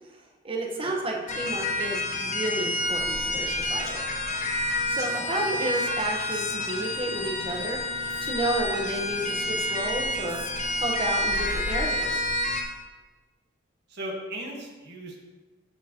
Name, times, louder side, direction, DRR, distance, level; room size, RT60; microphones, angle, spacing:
voice 1, 0.4-4.0 4.9-7.8 8.2-10.4 10.8-12.2, right 1 dB, 25° right, 0 dB, 1.0 m, -31 dB
sound 1, 1.3-12.6, left 1 dB, 35° left, 0.9 m, -29 dB
Speech, 3.6-5.1 5.7-7.2 8.0-10.8, left 7 dB, 80° left, 0.8 m, -44 dB
voice 2, 4.9-5.3 13.9-15.2, right 1 dB, 55° right, -1 dB, 1.4 m, -38 dB
14.0 x 4.6 x 2.9 m, 1.2 s
head